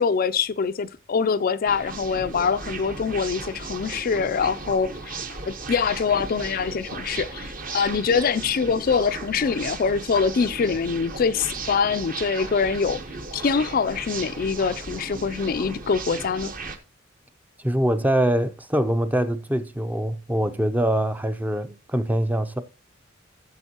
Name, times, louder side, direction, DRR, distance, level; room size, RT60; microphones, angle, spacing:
voice 1, 0.0-13.0 13.3-16.5, left 5 dB, 45° left, 0.4 m, -24 dB
sound 1, 1.6-16.8, right 3 dB, 40° right, 1.2 m, -36 dB
voice 2, 17.6-22.6, right 1 dB, 10° right, 0.5 m, -23 dB
15.0 x 7.2 x 2.9 m
head